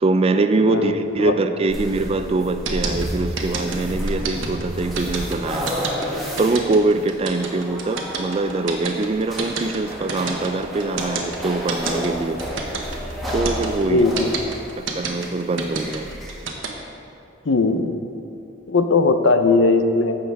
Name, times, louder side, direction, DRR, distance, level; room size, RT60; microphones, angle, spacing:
voice 1, 0.0-12.4 13.3-14.1 14.8-16.1, right 3 dB, 30° right, 9 dB, 0.3 m, -23 dB
voice 2, 0.6-1.3 13.8-14.3 17.4-18.0 18.7-20.2, left 3 dB, 70° left, 8 dB, 0.6 m, -19 dB
sound 1, 1.7-16.5, equal, ahead, 1.8 m, -31 dB
sound 2, 2.6-16.7, right 5 dB, 75° right, 1.2 m, -28 dB
15.5 x 6.5 x 3.5 m, 2.7 s
head